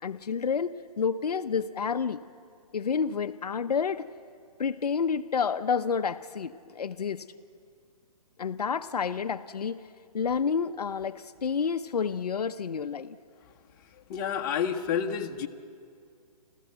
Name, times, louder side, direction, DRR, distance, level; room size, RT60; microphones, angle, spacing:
voice 1, 0.0-2.2 2.7-4.1 4.6-7.2 8.4-9.8 10.1-13.2, left 6 dB, 85° left, 10 dB, 0.7 m, -29 dB
voice 2, 14.1-15.5, left 8 dB, 35° left, 4 dB, 1.1 m, -29 dB
29.5 x 14.0 x 7.9 m, 2.3 s
hypercardioid pair, 145°, 19 cm